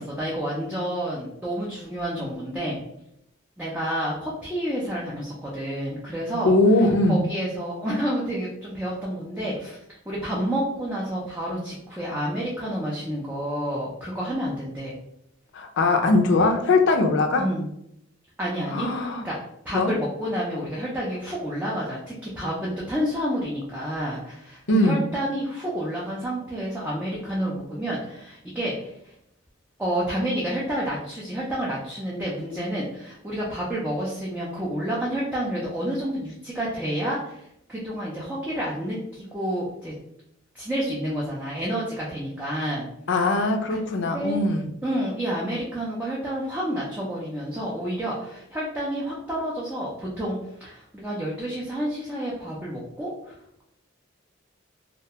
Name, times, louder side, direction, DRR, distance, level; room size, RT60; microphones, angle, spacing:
voice 1, 0.0-2.8 3.6-9.8 10.1-14.9 17.4-17.7 18.4-18.9 19.2-19.4 19.6-28.9 29.8-39.9 40.5-42.9 43.7-44.4 44.8-50.4 50.6-53.3, equal, 10° right, -6 dB, 0.4 m, -29 dB
voice 2, 6.4-7.2 15.5-17.5 18.7-19.2 19.7-19.9 24.7-25.0 43.1-44.7, left 2 dB, 60° left, 4 dB, 0.4 m, -21 dB
2.3 x 2.1 x 2.7 m, 0.77 s
head